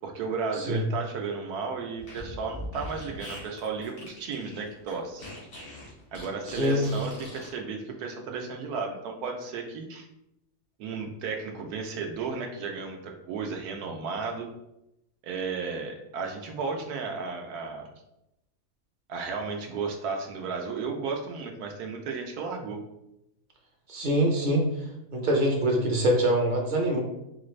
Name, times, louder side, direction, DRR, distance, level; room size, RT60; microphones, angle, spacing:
voice 1, 0.0-5.3 6.1-10.1 10.8-14.5 15.2-17.9 19.1-22.8, right 4 dB, 85° right, 3 dB, 1.2 m, -34 dB
Fart, 2.0-7.5, left 1 dB, 90° left, 2.3 m, -41 dB
voice 2, 6.5-6.9 23.9-24.6 25.1-27.0, right 1 dB, 45° right, 1 dB, 0.7 m, -24 dB
5.4 x 2.5 x 3.1 m, 0.87 s
omnidirectional pair, 1.6 m